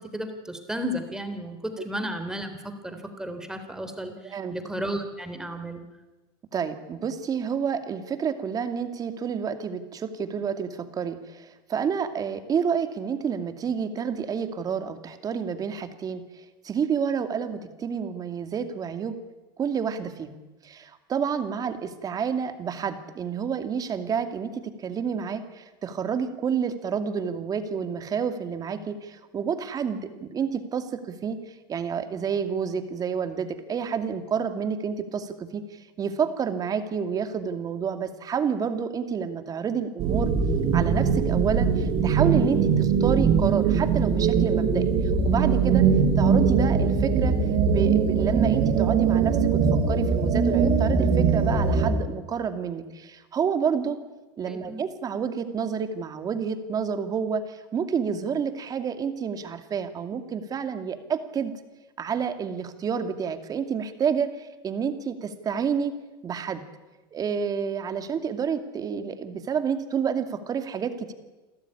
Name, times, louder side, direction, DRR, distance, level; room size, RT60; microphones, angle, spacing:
voice 1, 0.1-1.5 1.8-5.8 54.5-54.8, equal, 5° right, 7 dB, 3.4 m, -33 dB
voice 2, 4.2-4.5 6.5-19.1 19.6-40.3 40.7-44.8 45.2-45.8 46.2-47.3 47.7-49.6 49.9-54.0 54.4-61.5 62.0-65.9 66.2-66.6 67.1-71.1, right 7 dB, 30° right, 8 dB, 2.5 m, -29 dB
sound 1, 40.0-51.9, right 6 dB, 50° right, 5.7 m, -21 dB
29.0 x 13.5 x 9.9 m, 1.1 s
supercardioid pair, 115°, 12 cm